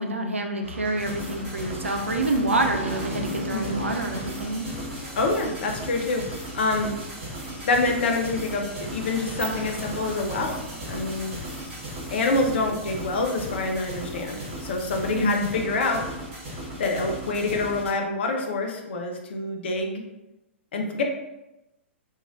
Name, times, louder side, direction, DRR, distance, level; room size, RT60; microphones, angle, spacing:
voice 1, 0.0-4.7 15.1-15.5, right 2 dB, 80° right, 3 dB, 0.4 m, -27 dB
sound 1, 0.6-11.6, left 1 dB, 60° right, 0.8 m, -39 dB
sound 2, 1.0-17.9, right 1 dB, 30° right, 1.2 m, -37 dB
voice 2, 5.2-6.9 7.6-10.5 10.9-11.3 12.1-16.0 16.8-20.0 20.7-21.0, left 3 dB, 60° left, 2 dB, 0.5 m, -26 dB
sound 3, 9.2-15.3, equal, 5° right, 0.7 m, -45 dB
3.0 x 2.4 x 2.6 m, 0.93 s
figure-of-eight pair, 110°, 7 cm